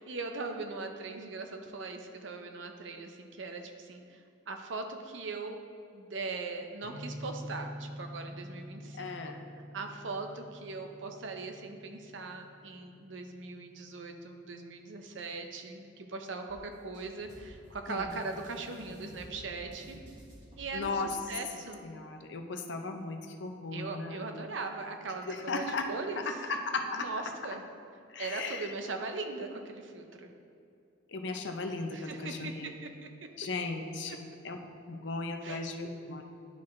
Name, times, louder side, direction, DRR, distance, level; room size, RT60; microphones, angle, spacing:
voice 1, 0.0-5.6 5.9-9.3 9.7-20.0 20.6-21.8 23.7-26.4 26.9-27.6 28.2-30.3 31.9-33.3 34.1-34.2 35.4-35.6, right 3 dB, 80° right, 5 dB, 0.7 m, -40 dB
sound 1, 6.8-15.5, equal, 30° left, 1.3 m, -47 dB
voice 2, 8.9-9.4 17.9-18.1 20.7-21.1 21.8-24.3 25.3-25.9 26.2-27.1 28.1-28.7 31.1-32.8 33.4-34.6 34.9-36.2, left 3 dB, 70° left, 5 dB, 0.6 m, -36 dB
sound 2, 16.5-20.9, equal, 40° right, 1.4 m, -51 dB
11.0 x 4.2 x 3.2 m, 2.6 s
head